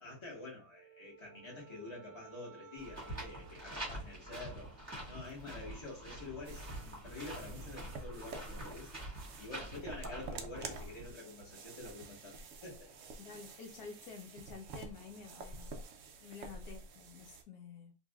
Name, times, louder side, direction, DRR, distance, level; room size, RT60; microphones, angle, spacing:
voice 1, 0.0-4.7 5.1-8.9 9.4-13.0, left 2 dB, 20° left, 1.2 m, -48 dB
Wind instrument woodwind instrument, 0.7-5.2, right 6 dB, 90° right, 1.2 m, -58 dB
sound 1, 2.8-11.1, right 1 dB, 10° right, 1.2 m, -46 dB
sound 2, 6.5-17.4, right 3 dB, 65° right, 0.8 m, -49 dB
voice 2, 13.2-15.7 16.2-17.9, left 5 dB, 75° left, 1.0 m, -50 dB
3.1 x 2.6 x 2.3 m
omnidirectional pair, 1.7 m